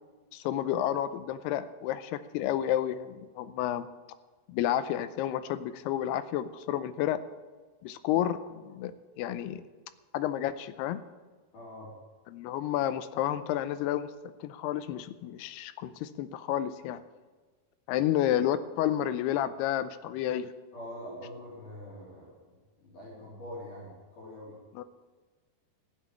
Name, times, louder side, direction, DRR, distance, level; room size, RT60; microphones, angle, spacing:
voice 1, 0.3-3.9 4.5-7.2 7.8-8.9 9.2-9.6 10.1-11.0 12.3-14.1 14.4-17.0 17.9-20.5 24.7-24.8, left 11 dB, 85° left, 12 dB, 2.6 m, -30 dB
voice 2, 11.5-11.9 20.7-22.3 22.8-24.6, left 1 dB, 50° left, -6 dB, 4.9 m, -44 dB
15.0 x 8.3 x 8.6 m, 1.4 s
omnidirectional pair, 4.7 m